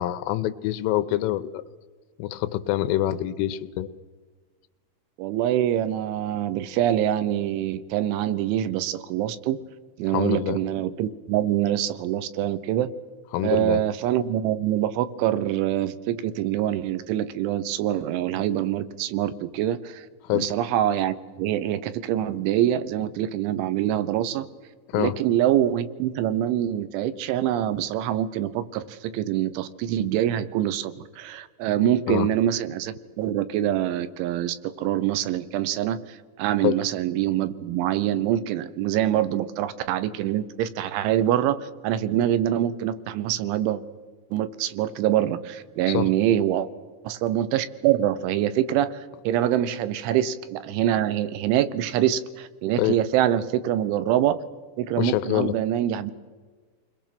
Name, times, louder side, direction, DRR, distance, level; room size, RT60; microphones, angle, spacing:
voice 1, 0.0-1.6 2.2-3.9 10.1-10.6 13.3-13.8 20.2-20.5 24.9-25.2 32.1-32.3 36.6-36.8 45.9-46.1 52.8-53.0 55.0-55.6, left 14 dB, 85° left, 13 dB, 3.4 m, -25 dB
voice 2, 5.2-9.6 10.0-12.9 13.4-20.1 20.3-24.5 25.0-43.8 44.3-46.7 47.1-49.0 49.3-54.4 54.8-56.1, right 12 dB, 80° right, 13 dB, 3.3 m, -25 dB
29.5 x 22.0 x 6.0 m, 1.4 s
omnidirectional pair, 5.6 m